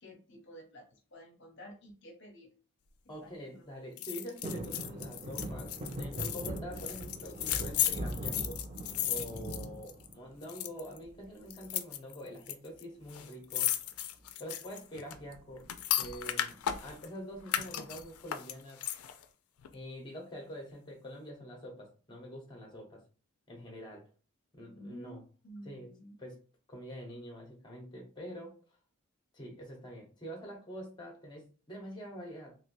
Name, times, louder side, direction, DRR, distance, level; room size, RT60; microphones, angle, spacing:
voice 1, 0.0-2.5 3.2-3.6 24.7-25.2 25.4-26.1, equal, 55° left, 2 dB, 0.7 m, -51 dB
voice 2, 3.1-8.6 9.1-13.7 14.4-15.7 16.0-18.8 19.7-23.0 23.5-24.1 24.5-25.2 25.6-25.9 26.2-26.4 26.7-28.6 29.3-32.6, equal, 20° left, 1 dB, 1.0 m, -45 dB
sound 1, 4.0-10.1 10.4-11.0 11.5-12.5 12.8-12.9 13.1-17.1 17.5-19.2 19.6-19.7, left 11 dB, 80° left, 0.4 m, -35 dB
sound 2, 4.4-10.6 11.0-11.6 12.9-13.3 13.6-13.7 14.0-14.3 15.1-16.0 16.5-16.6, right 1 dB, 30° right, 0.6 m, -41 dB
3.2 x 2.9 x 2.6 m, 0.35 s
head